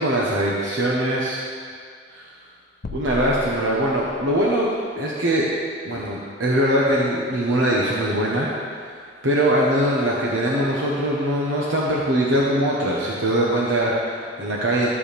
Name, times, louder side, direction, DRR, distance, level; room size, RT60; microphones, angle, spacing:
voice 1, 0.0-1.4 2.1-2.3 2.9-4.7 5.0-5.5 5.8-9.0 9.2-14.9, right 1 dB, 80° right, -4 dB, 1.2 m, -22 dB
sound 1, 2.8-4.4, left 1 dB, 55° left, 0.5 m, -35 dB
14.0 x 7.2 x 3.5 m, 2.1 s
head